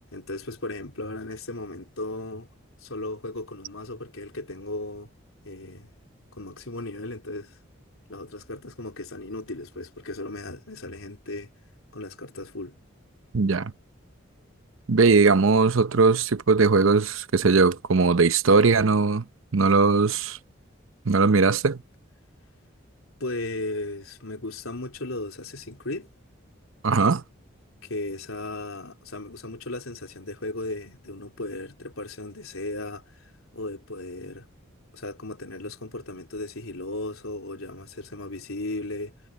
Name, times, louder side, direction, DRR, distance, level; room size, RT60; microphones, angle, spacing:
voice 1, 0.1-2.5 2.8-5.1 5.4-5.9 6.3-7.6 8.1-11.5 11.9-12.8 23.2-26.1 27.8-34.5 34.9-39.2, left 2 dB, 90° left, 4.1 m, -36 dB
voice 2, 13.3-13.7 14.9-19.2 19.5-20.4 21.1-21.8 26.8-27.2, right 4 dB, 75° right, 0.7 m, -19 dB
head